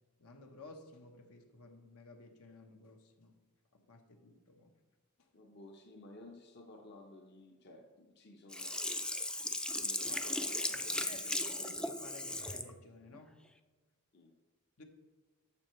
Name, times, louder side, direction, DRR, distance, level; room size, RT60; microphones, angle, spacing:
voice 1, 0.2-3.4 3.7-4.8 5.2-5.3 10.7-13.4 14.8-14.9, left 3 dB, 75° left, 4 dB, 1.0 m, -55 dB
voice 2, 5.3-8.9 9.5-11.8 14.1-14.4, left 2 dB, 50° left, 3 dB, 0.8 m, -55 dB
Sink (filling or washing), 8.5-12.7 13.1-13.2, left 1 dB, 5° left, 0.3 m, -37 dB
11.0 x 7.5 x 3.1 m, 1.3 s
head